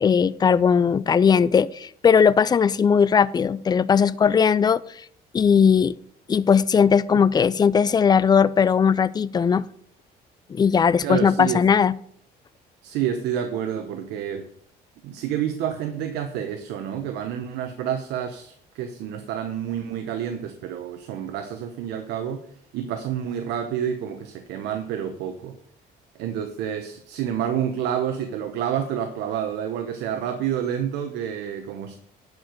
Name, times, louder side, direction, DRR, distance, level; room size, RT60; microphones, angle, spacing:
voice 1, 0.0-4.8 5.3-5.9 6.3-9.6 10.5-12.0, left 6 dB, 25° left, 19 dB, 0.4 m, -18 dB
voice 2, 11.0-11.6 12.8-14.5 15.0-22.4 22.7-25.6 26.2-32.0, right 9 dB, 85° right, 6 dB, 0.9 m, -29 dB
10.5 x 4.9 x 6.4 m, 0.64 s
cardioid pair, 110°, 17 cm